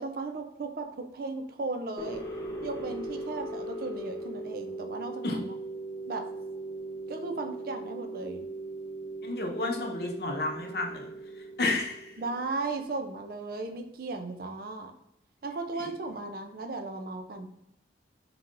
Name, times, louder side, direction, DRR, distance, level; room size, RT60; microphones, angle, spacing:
voice 1, 0.0-2.2 2.6-5.5 6.1-6.2 7.1-8.5 12.2-14.9 15.4-17.5, right 3 dB, 55° right, 5 dB, 0.5 m, -36 dB
sound 1, 2.0-12.8, right 2 dB, 20° left, 0.6 m, -39 dB
voice 2, 9.2-11.1 11.6-12.1 15.8-15.9, left 2 dB, 60° left, 1 dB, 0.8 m, -31 dB
5.5 x 2.9 x 2.5 m, 0.82 s
head